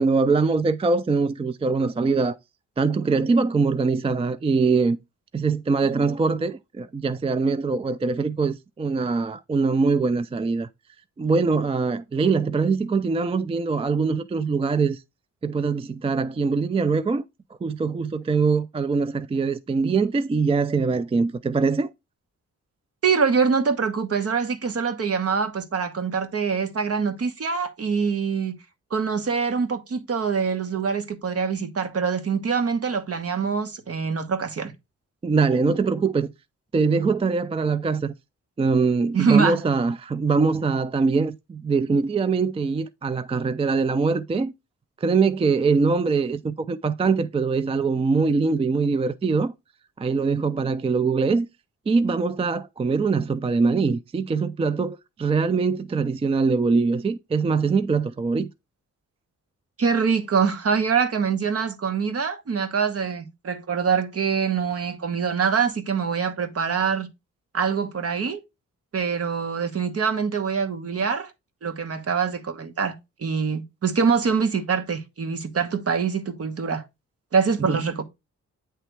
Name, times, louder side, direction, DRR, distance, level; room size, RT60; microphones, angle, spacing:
voice 1, 0.0-2.4 2.8-5.0 5.3-10.7 11.2-15.0 15.4-17.2 17.6-21.9 35.2-36.3 36.7-38.1 38.6-44.5 45.0-49.5 50.0-51.5 51.9-58.5 77.6-77.8, right 4 dB, 20° right, 0.3 m, -23 dB
voice 2, 23.0-28.5 28.9-34.7 39.1-39.6 59.8-67.1 67.5-68.4 68.9-71.3 71.6-72.9 73.2-76.8 77.3-78.0, right 6 dB, 50° right, 1.2 m, -24 dB
9.1 x 3.3 x 4.5 m
cardioid pair, 100°, 30 cm